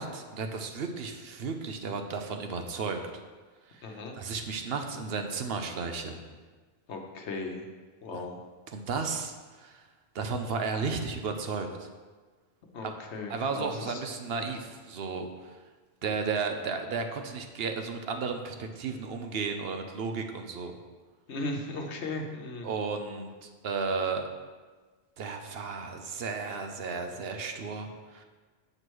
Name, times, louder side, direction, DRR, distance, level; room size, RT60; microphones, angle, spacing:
voice 1, 0.0-3.0 3.7-6.2 8.1-8.3 8.7-9.8 10.1-11.9 12.8-12.9 13.3-15.3 16.0-20.7 22.6-24.3 25.2-28.2, right 4 dB, 70° right, 5 dB, 0.9 m, -34 dB
voice 2, 3.8-4.2 6.9-7.6 8.0-8.4 12.7-14.0 21.3-22.7, left 2 dB, 85° left, 2 dB, 1.2 m, -37 dB
7.5 x 3.1 x 6.2 m, 1.4 s
omnidirectional pair, 1.1 m